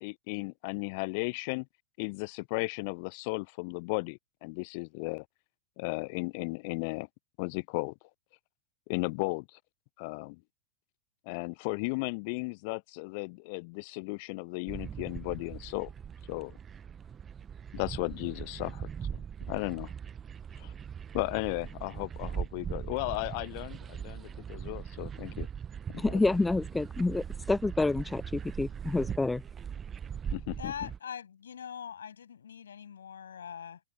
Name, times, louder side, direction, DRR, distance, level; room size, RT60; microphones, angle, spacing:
voice 1, 0.0-1.7 2.0-5.2 5.8-7.1 7.4-7.9 8.9-9.6 10.0-10.4 11.3-15.9 16.3-16.6 17.7-19.9 20.6-20.7 21.1-25.5 25.9-26.3 30.3-30.9, left 30 dB, 45° left, 0.8 m, -35 dB
sound 1, 14.7-31.0, right 7 dB, 20° right, 1.2 m, -40 dB
voice 2, 26.0-29.4, left 2 dB, 10° left, 0.4 m, -28 dB
voice 3, 30.6-33.8, left 8 dB, 65° left, 7.5 m, -42 dB
figure-of-eight pair, 90°, 0 cm